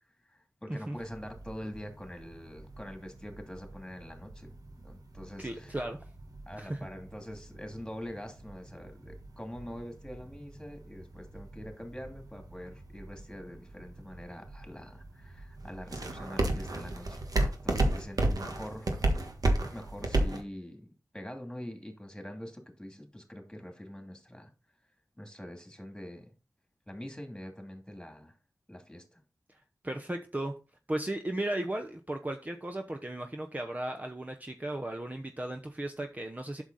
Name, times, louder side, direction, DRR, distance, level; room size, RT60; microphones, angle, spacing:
voice 1, 0.2-4.5 4.8-5.8 6.5-18.9 19.7-20.9 21.1-24.5 25.2-26.3 26.9-28.4 28.7-29.2, equal, 10° left, 2.7 m, -44 dB
sound 1, 0.9-20.4, right 2 dB, 80° right, 1.5 m, -35 dB
voice 2, 5.4-6.0 6.6-6.8 29.8-30.5 30.9-36.6, right 1 dB, 25° right, 0.8 m, -35 dB
8.0 x 6.4 x 4.1 m
wide cardioid pair, 50°, 6 cm